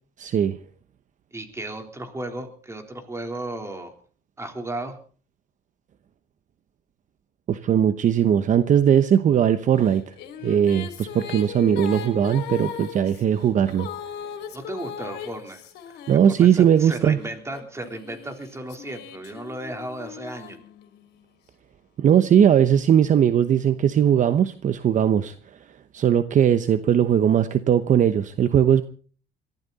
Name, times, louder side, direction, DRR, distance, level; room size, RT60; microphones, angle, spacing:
voice 1, 0.2-0.6 7.5-10.0 10.4-13.9 16.1-17.2 22.0-25.3 25.9-28.8, right 9 dB, 50° right, 11 dB, 1.0 m, -19 dB
voice 2, 1.3-3.9 4.4-5.0 14.5-15.6 16.4-20.6, right 1 dB, 15° right, 5 dB, 3.7 m, -34 dB
Female singing, 9.9-16.8 17.5-21.2, left 8 dB, 75° left, 3.6 m, -38 dB
22.0 x 15.0 x 4.2 m, 0.42 s
cardioid pair, 110°, 17 cm